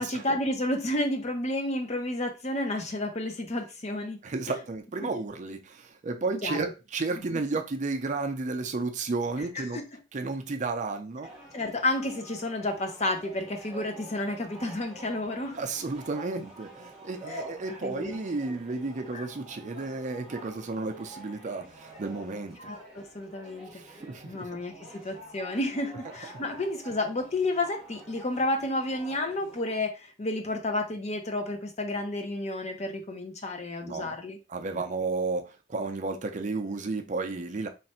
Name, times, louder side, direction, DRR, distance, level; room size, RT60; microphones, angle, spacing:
voice 1, 0.0-4.2 6.4-6.7 7.3-7.4 9.7-9.8 11.5-15.6 17.3-17.5 17.8-18.1 19.1-19.3 22.6-24.7 25.0-34.4, left 1 dB, 35° left, 0.7 m, -31 dB
voice 2, 4.2-9.8 10.1-11.3 15.5-22.7 23.7-24.5 33.8-34.2 34.5-37.7, right 3 dB, 40° right, 0.5 m, -32 dB
sound 1, 11.2-29.8, right 1 dB, ahead, 1.3 m, -48 dB
3.2 x 2.5 x 4.2 m
head